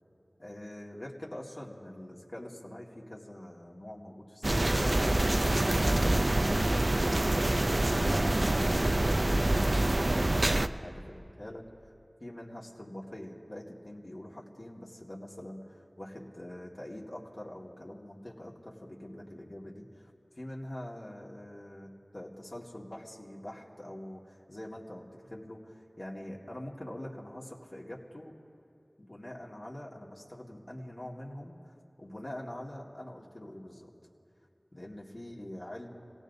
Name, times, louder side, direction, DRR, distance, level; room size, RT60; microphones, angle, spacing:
voice 1, 0.4-11.9 12.2-28.3 29.0-33.9 34.7-35.9, left 1 dB, 50° left, -4 dB, 1.9 m, -44 dB
sound 1, 4.4-10.7, right 1 dB, 50° right, 0.4 m, -26 dB
29.0 x 17.5 x 2.7 m, 2.6 s
wide cardioid pair, 45°, 0 cm